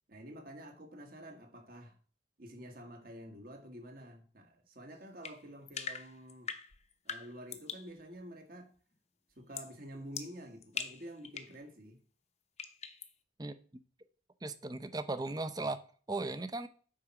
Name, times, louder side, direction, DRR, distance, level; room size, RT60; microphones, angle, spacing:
voice 1, 0.1-2.0 2.4-6.5 7.0-8.7 9.4-12.0, equal, 50° right, 1.7 m, -49 dB
sound 1, 5.2-7.9 9.5-9.8 10.1-11.6 12.6-13.1, left 6 dB, 35° left, 0.8 m, -42 dB
voice 2, 14.4-15.8 16.1-16.7, right 2 dB, 20° right, 0.6 m, -37 dB
8.6 x 4.3 x 5.9 m
head